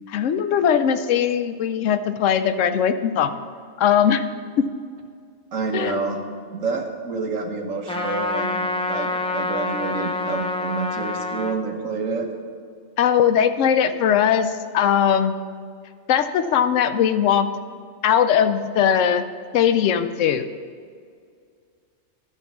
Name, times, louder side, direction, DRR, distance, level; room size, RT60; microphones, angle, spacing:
voice 1, 0.1-3.3 3.8-4.3 4.6-4.7 5.7-6.0 13.0-15.3 16.1-17.5 18.0-19.2 19.5-20.5, left 8 dB, 75° left, 10 dB, 0.9 m, -20 dB
voice 2, 5.5-6.2 6.5-8.6 8.9-12.3, right 4 dB, 90° right, 3 dB, 1.5 m, -28 dB
Trumpet, 7.9-11.6, left 2 dB, 5° left, 0.5 m, -27 dB
12.5 x 4.5 x 7.1 m, 2.2 s
omnidirectional pair, 1.3 m